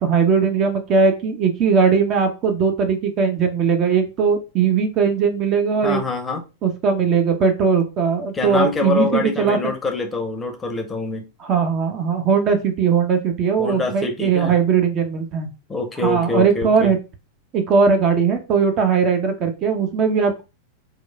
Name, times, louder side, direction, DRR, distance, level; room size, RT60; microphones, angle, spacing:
voice 1, 0.0-6.0 6.6-9.6 11.4-15.5 16.0-17.0 17.5-20.4, right 5 dB, 35° right, 0.5 m, -19 dB
voice 2, 5.8-6.4 8.3-11.2 13.6-14.5 15.7-16.9, left 3 dB, 15° left, 0.6 m, -25 dB
2.9 x 2.2 x 2.3 m
figure-of-eight pair, 90°, 0 cm